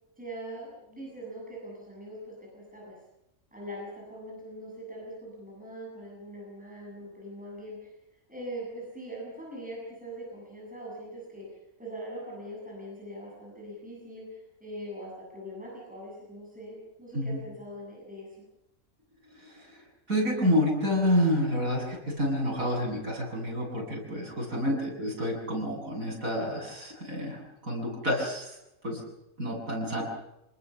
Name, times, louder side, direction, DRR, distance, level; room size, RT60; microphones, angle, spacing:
voice 1, 0.2-3.0 3.5-7.9 8.3-11.5 11.8-18.3 24.6-25.1 29.9-30.0, right 1 dB, 5° right, -4 dB, 7.6 m, -42 dB
voice 2, 20.1-28.6 28.8-29.0 29.4-30.0, equal, 70° right, -1 dB, 8.6 m, -29 dB
27.0 x 20.0 x 7.2 m, 0.88 s
omnidirectional pair, 1.5 m